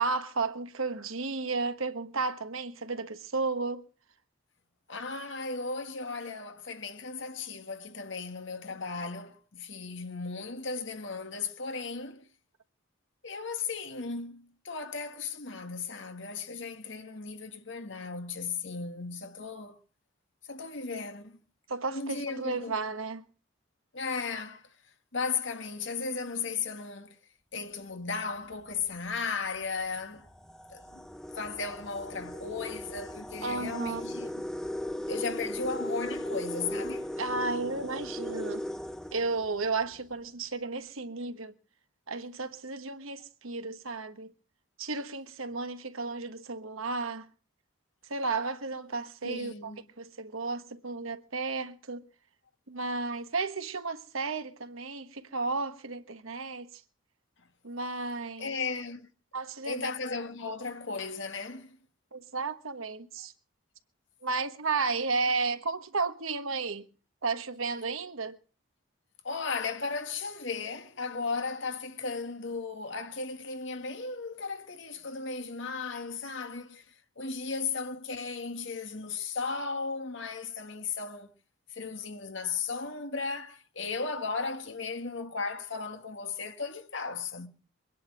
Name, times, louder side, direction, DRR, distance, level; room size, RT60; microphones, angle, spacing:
voice 1, 0.0-3.8 21.7-23.2 33.4-34.0 37.2-38.6 39.1-41.5 42.1-44.3 44.8-47.3 48.1-52.0 52.7-56.7 57.6-58.5 59.3-59.9 62.1-63.3 64.2-66.9 67.2-68.4, right 4 dB, 85° right, 1.3 m, -33 dB
voice 2, 4.9-12.2 13.2-19.8 20.5-21.4 21.9-22.8 23.9-24.7 25.1-27.2 27.5-30.3 30.7-31.1 31.3-34.3 35.1-37.1 49.2-49.8 58.4-59.1 59.6-61.8 69.2-76.8 77.2-81.3 81.7-87.5, left 4 dB, 65° left, 1.7 m, -36 dB
sound 1, 28.5-28.8 29.6-29.7 30.1-39.9, left 1 dB, 5° left, 0.8 m, -38 dB
23.5 x 10.5 x 5.1 m
head